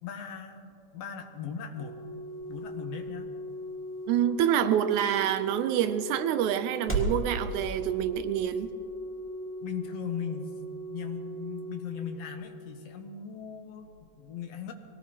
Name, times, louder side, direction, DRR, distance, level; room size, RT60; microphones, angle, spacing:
voice 1, 0.0-2.0 2.5-3.3 9.6-10.5 10.9-14.7, left 8 dB, 70° left, 5 dB, 1.6 m, -38 dB
sound 1, 1.0-7.2, right 2 dB, 5° left, 1.1 m, -39 dB
Organ, 1.7-12.6 13.8-13.9, right 2 dB, 45° left, 3.0 m, -40 dB
voice 2, 4.1-8.7, right 10 dB, 80° right, 10 dB, 1.9 m, -27 dB
22.5 x 18.5 x 2.9 m, 2.9 s
omnidirectional pair, 3.7 m